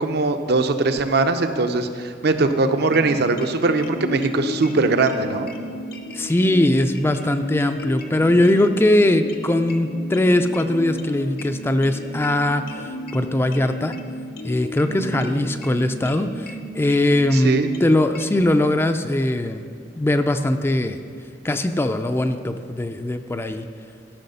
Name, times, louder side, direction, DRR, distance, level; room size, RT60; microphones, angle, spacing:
voice 1, 0.0-5.5 15.0-15.3 17.3-17.7, right 3 dB, 60° right, 8 dB, 0.7 m, -21 dB
sound 1, 2.7-18.4, left 1 dB, 60° left, 0.7 m, -34 dB
voice 2, 6.1-12.6 13.1-13.9 14.4-19.6 20.0-21.0 21.4-23.7, left 1 dB, 15° left, 8 dB, 0.4 m, -20 dB
13.0 x 5.7 x 5.5 m, 2.2 s
head